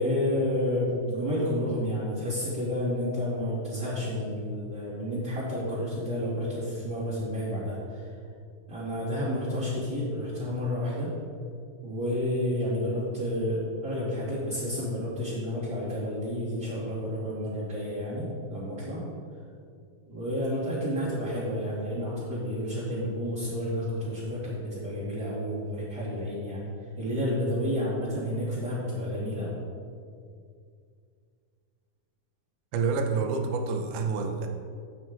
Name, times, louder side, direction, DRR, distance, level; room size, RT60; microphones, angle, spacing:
voice 1, 0.0-8.0 8.7-11.1 11.8-19.0 20.1-26.7 27.0-29.6, left 1 dB, 30° right, -13 dB, 2.6 m, -30 dB
voice 2, 32.7-34.5, right 4 dB, 80° right, 4 dB, 1.8 m, -28 dB
9.1 x 8.6 x 3.7 m, 2.3 s
omnidirectional pair, 4.4 m